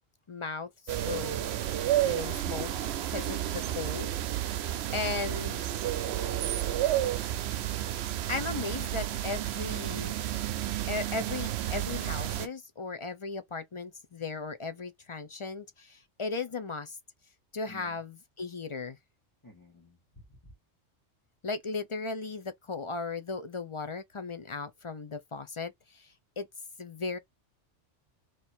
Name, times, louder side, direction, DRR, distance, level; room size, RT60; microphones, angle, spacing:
voice 1, 0.3-1.5 2.0-2.7 3.1-4.1 4.6-5.6 8.3-10.1 10.9-17.0 17.5-19.0 21.4-26.5 26.8-27.2, left 4 dB, 40° left, 0.4 m, -36 dB
sound 1, 0.9-12.5, right 12 dB, 70° right, 0.8 m, -31 dB
voice 2, 17.7-18.0 19.4-20.5, left 1 dB, 15° left, 1.2 m, -52 dB
3.1 x 2.7 x 4.3 m
omnidirectional pair, 1.2 m